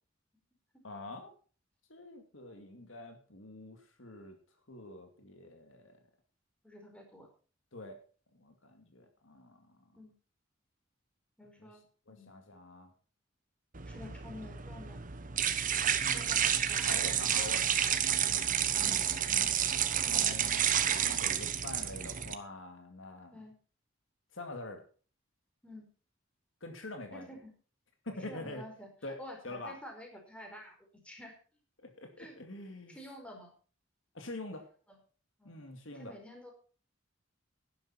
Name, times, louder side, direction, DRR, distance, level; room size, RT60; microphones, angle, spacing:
voice 1, 0.8-1.3 1.9-4.4 4.7-6.0 7.7-8.0 8.3-9.9 11.6-11.7 12.1-12.9 14.0-14.1 16.0-16.4 16.8-19.5 20.0-23.4 24.3-24.8 26.6-27.3 28.0-28.6 29.0-29.2 29.4-29.7 31.8-33.0 34.1-34.7 35.4-36.2, left 2 dB, 75° left, 5 dB, 2.5 m, -46 dB
voice 2, 6.6-7.3 9.9-10.1 11.4-11.8 12.1-12.3 13.8-15.0 16.1-17.2 18.7-19.0 19.3-19.6 23.3-23.5 25.6-25.9 27.1-27.5 28.1-28.9 29.2-30.8 31.0-31.3 32.2-32.4 32.9-33.5 34.9-35.0 35.4-35.6 35.9-36.5, left 1 dB, 5° left, 1 dB, 4.6 m, -50 dB
sound 1, 13.7-22.3, right 9 dB, 45° right, 1.1 m, -30 dB
11.5 x 11.5 x 4.4 m, 0.39 s
head